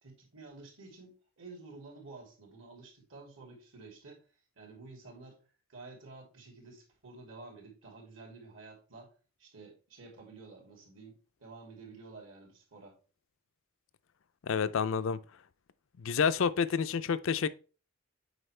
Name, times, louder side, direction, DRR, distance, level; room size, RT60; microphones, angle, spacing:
voice 1, 0.0-4.2 4.6-5.4 5.7-9.1 9.4-13.0, right 3 dB, 65° right, 2.8 m, -51 dB
voice 2, 14.4-15.2 16.0-17.5, left 6 dB, 65° left, 0.4 m, -29 dB
8.0 x 4.9 x 3.2 m
head